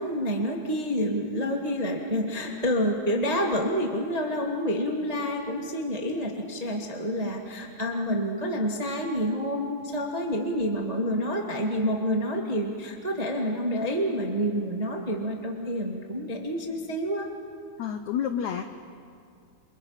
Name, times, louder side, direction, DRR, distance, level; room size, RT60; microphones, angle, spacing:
voice 1, 0.0-17.3, equal, 25° right, 0 dB, 0.7 m, -28 dB
voice 2, 17.8-18.6, left 8 dB, 80° left, 7 dB, 1.6 m, -29 dB
28.5 x 28.0 x 5.8 m, 2.4 s
omnidirectional pair, 4.4 m